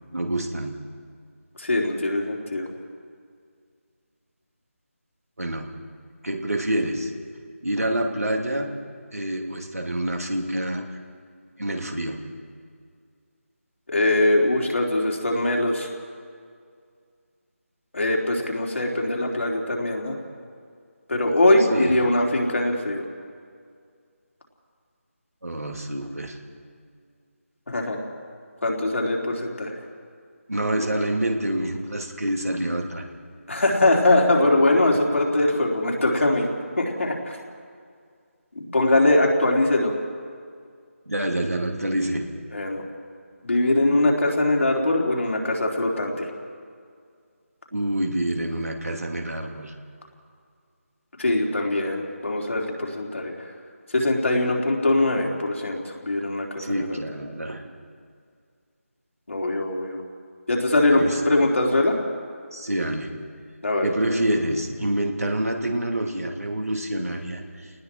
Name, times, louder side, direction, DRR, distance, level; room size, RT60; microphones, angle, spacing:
voice 1, 0.1-0.8 5.4-5.8 6.2-7.1 7.6-8.8 9.1-10.9 11.6-12.3 21.7-22.0 25.4-26.4 30.5-33.1 34.9-35.0 41.1-42.3 47.7-49.7 56.6-57.6 61.0-61.2 62.5-63.2 63.8-67.7, right 1 dB, 85° right, 2 dB, 2.9 m, -27 dB
voice 2, 1.6-2.7 13.9-15.9 17.9-20.2 21.1-23.0 27.7-28.0 28.6-29.7 33.5-36.5 36.8-37.1 38.6-39.9 42.5-42.8 43.4-46.3 51.2-53.3 53.9-57.0 59.3-60.0 60.5-62.0 63.6-63.9, left 2 dB, 65° left, -1 dB, 3.7 m, -22 dB
29.0 x 19.5 x 4.6 m, 2.1 s
figure-of-eight pair, 160°, 8 cm